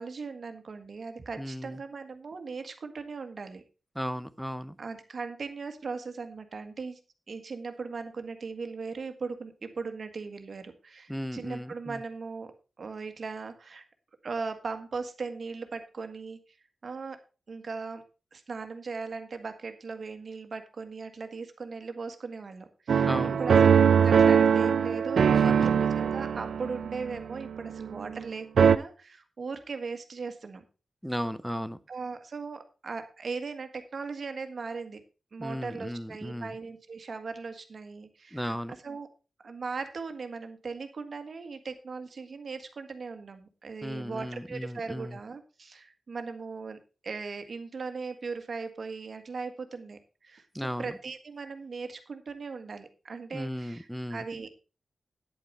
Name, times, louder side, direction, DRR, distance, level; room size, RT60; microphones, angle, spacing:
voice 1, 0.0-3.6 4.8-7.0 7.3-12.5 12.8-13.8 14.2-16.4 16.8-17.2 17.5-18.0 18.3-23.1 23.4-30.6 31.9-35.0 35.3-38.5 38.8-39.1 39.4-50.5 50.8-54.5, right 4 dB, 55° right, 8 dB, 1.7 m, -38 dB
voice 2, 1.4-1.8 4.0-4.8 11.1-12.0 23.1-23.7 25.3-25.7 31.0-31.8 35.4-36.6 38.3-38.7 43.8-45.2 50.5-50.9 53.3-54.2, equal, ahead, 13 dB, 0.7 m, -35 dB
sound 1, 22.9-28.2 28.6-28.8, right 7 dB, 85° right, 0.6 m, -22 dB
9.6 x 8.7 x 4.3 m, 0.32 s
wide cardioid pair, 110°, 0 cm